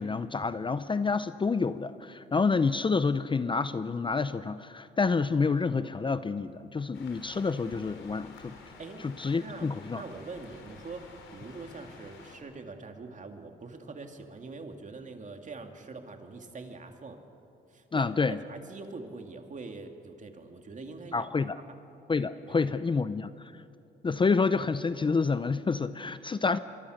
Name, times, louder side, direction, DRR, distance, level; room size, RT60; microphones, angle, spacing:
voice 1, 0.0-8.5 9.0-10.0 17.9-18.4 21.1-21.6 22.1-23.3 24.0-26.6, left 4 dB, 25° left, 13 dB, 0.6 m, -28 dB
sound 1, 6.9-12.4, left 4 dB, 80° left, 3.9 m, -51 dB
voice 2, 9.4-17.2 17.7-21.5 22.4-23.0, right 3 dB, 40° right, 5 dB, 2.5 m, -44 dB
24.5 x 23.0 x 6.5 m, 2.7 s
cardioid pair, 90°, 20 cm